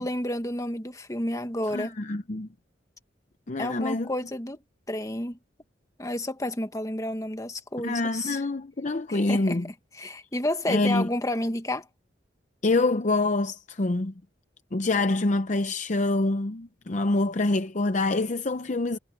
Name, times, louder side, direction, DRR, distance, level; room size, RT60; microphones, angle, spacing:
voice 1, 0.0-1.9 3.6-4.6 4.9-5.4 6.0-8.4 9.1-9.6 10.0-11.9, left 1 dB, 20° left, 1.6 m, -30 dB
voice 2, 1.7-2.5 3.5-4.1 7.8-9.7 10.7-11.1 12.6-14.1 14.7-19.0, left 2 dB, 40° left, 0.7 m, -26 dB
head